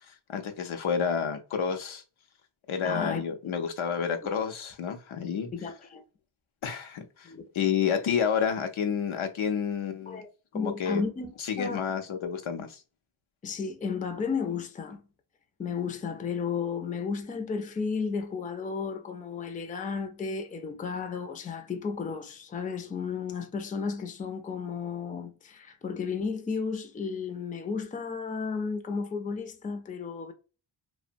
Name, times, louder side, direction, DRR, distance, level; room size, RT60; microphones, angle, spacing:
voice 1, 0.1-2.0 2.7-5.5 6.6-10.2 10.5-11.0 11.4-12.8, left 7 dB, 85° left, 0.6 m, -30 dB
voice 2, 2.8-3.2 5.5-6.0 7.2-7.4 10.1-10.3 10.5-11.9 13.4-15.0 15.6-30.3, left 5 dB, 20° left, 0.3 m, -33 dB
2.8 x 2.1 x 2.5 m
wide cardioid pair, 105°, 47 cm